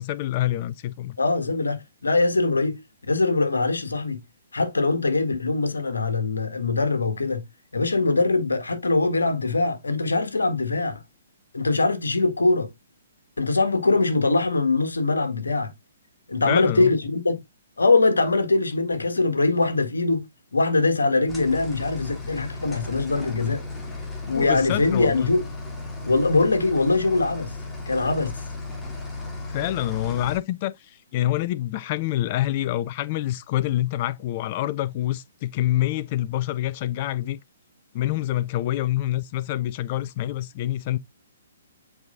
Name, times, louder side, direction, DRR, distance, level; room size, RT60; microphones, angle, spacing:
voice 1, 0.0-1.2 16.5-16.9 24.3-25.3 29.5-37.4 37.9-41.0, left 14 dB, 35° left, 0.4 m, -26 dB
voice 2, 1.2-2.8 3.1-4.2 4.5-7.4 7.7-11.0 11.5-12.7 13.4-15.7 16.3-17.4 17.8-20.3 20.5-23.6 24.3-25.4 26.0-27.5 27.9-28.4, left 3 dB, 75° left, 1.6 m, -22 dB
sound 1, 21.3-30.4, left 3 dB, 10° left, 2.0 m, -35 dB
7.9 x 4.8 x 2.5 m
figure-of-eight pair, 125°, 0 cm